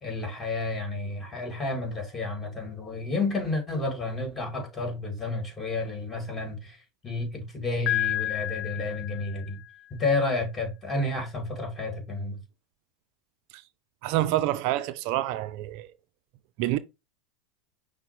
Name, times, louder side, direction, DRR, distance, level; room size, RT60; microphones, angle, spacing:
voice 1, 0.0-6.8 7.0-9.6 9.9-12.4, left 2 dB, 20° left, 2.3 m, -31 dB
Piano, 7.9-9.8, left 14 dB, 45° left, 0.4 m, -30 dB
voice 2, 14.0-15.9 16.6-16.8, right 14 dB, 60° right, 0.3 m, -27 dB
5.6 x 2.0 x 4.3 m
hypercardioid pair, 95°, 0 cm